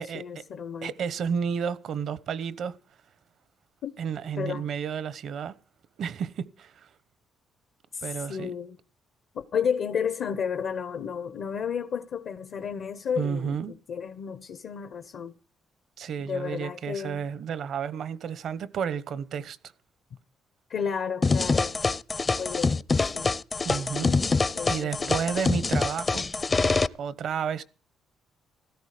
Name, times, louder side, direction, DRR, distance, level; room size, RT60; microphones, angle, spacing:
voice 1, 0.0-0.9 3.8-4.0 4.4-4.7 7.9-8.8 9.3-15.3 16.2-17.3 20.7-21.8 22.4-23.4 24.0-24.3 24.5-25.2, left 7 dB, 65° left, 1.0 m, -32 dB
voice 2, 0.8-2.8 4.0-5.6 6.0-6.9 8.0-8.5 13.2-13.7 16.0-19.6 23.6-24.1 24.7-26.3 27.0-27.6, right 7 dB, 65° right, 1.0 m, -31 dB
sound 1, 21.2-26.9, left 4 dB, 30° left, 0.6 m, -25 dB
16.5 x 13.5 x 5.1 m
cardioid pair, 90°, 0 cm